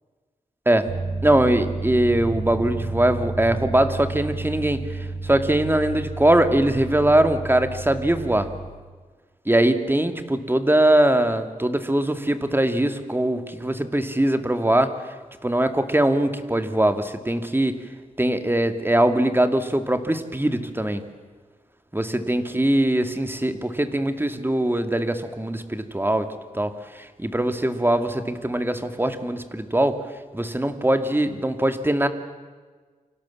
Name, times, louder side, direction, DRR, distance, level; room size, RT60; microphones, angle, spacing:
sound 1, 0.9-8.7, right 3 dB, 80° right, 3.8 m, -31 dB
voice 1, 1.2-8.5 9.5-15.1 15.4-17.7 18.2-21.0 21.9-26.3 26.5-30.0 30.3-32.1, right 1 dB, 15° right, 8 dB, 2.2 m, -22 dB
29.0 x 25.0 x 7.4 m, 1.4 s
wide cardioid pair, 75°, 14 cm